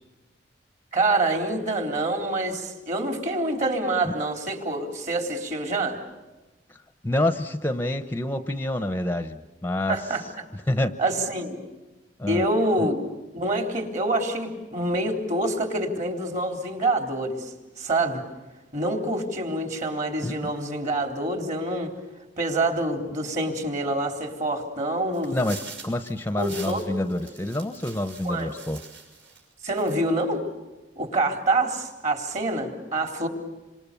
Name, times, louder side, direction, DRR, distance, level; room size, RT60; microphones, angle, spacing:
voice 1, 0.9-6.0 9.9-10.2 11.0-11.6 12.3-13.0 13.3-18.2 18.7-21.9 22.4-25.4 26.4-27.0 27.3-27.4 28.2-28.5 29.6-30.4 31.0-33.3, right 2 dB, 40° right, 5 dB, 3.8 m, -26 dB
voice 2, 7.0-10.0 10.7-11.0 12.2-12.5 12.8-12.9 20.2-20.5 25.3-28.8, left 1 dB, 10° left, 10 dB, 0.8 m, -27 dB
sound 1, 25.1-29.4 29.7-30.2, right 5 dB, 80° right, 6.5 m, -44 dB
28.5 x 26.0 x 7.0 m, 1.1 s
head